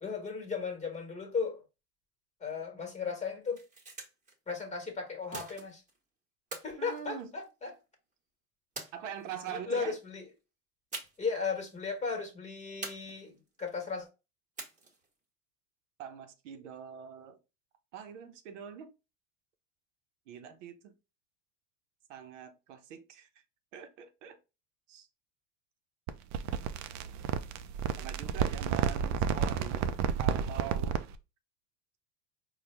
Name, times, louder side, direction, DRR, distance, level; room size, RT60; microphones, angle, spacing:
voice 1, 0.0-1.6 2.4-3.6 4.5-5.8 6.6-7.7 9.5-10.2 11.2-14.1, left 5 dB, 20° left, 1.4 m, -36 dB
sound 1, 3.4-4.3 5.3-6.0 6.5-7.8 8.8-9.5 10.9-11.4 11.6-11.8 12.8-13.6 14.6-15.1, right 3 dB, 20° right, 1.3 m, -44 dB
voice 2, 6.8-7.3 8.9-10.0 16.0-17.4 17.9-18.9 20.3-20.9 22.1-23.3 23.7-24.4 24.9-25.1 28.0-29.9 30.2-31.0, right 8 dB, 85° right, 0.8 m, -43 dB
sound 2, 26.1-31.1, right 8 dB, 50° right, 0.5 m, -31 dB
4.3 x 2.3 x 3.3 m
supercardioid pair, 105°, 36 cm